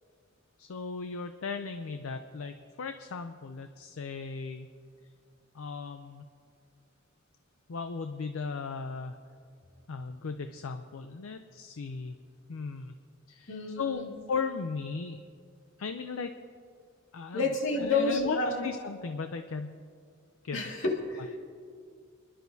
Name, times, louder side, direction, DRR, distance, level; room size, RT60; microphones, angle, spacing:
voice 1, 0.6-4.7 5.5-6.2 7.7-9.2 9.9-12.2 12.5-12.9 13.3-15.2 15.8-16.3 17.1-17.5 17.8-19.8 20.4-20.6, left 5 dB, 80° left, 8 dB, 0.5 m, -36 dB
voice 2, 13.5-14.1 17.3-18.6 20.5-21.4, left 3 dB, 65° left, -1 dB, 2.1 m, -30 dB
29.5 x 11.5 x 2.7 m, 2.2 s
head